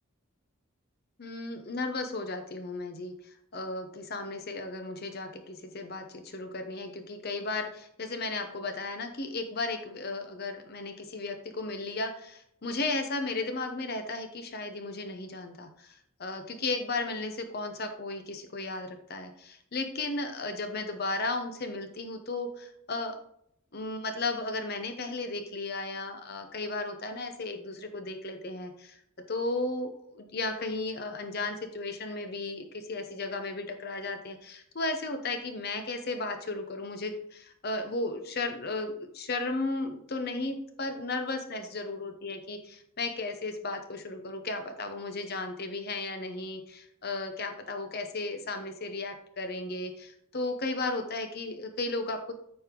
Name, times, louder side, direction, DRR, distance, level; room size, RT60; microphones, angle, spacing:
voice 1, 1.2-3.1 3.5-23.2 23.7-29.0 29.3-52.3, left 2 dB, 50° left, 7 dB, 0.8 m, -35 dB
9.1 x 5.3 x 3.8 m, 0.70 s
head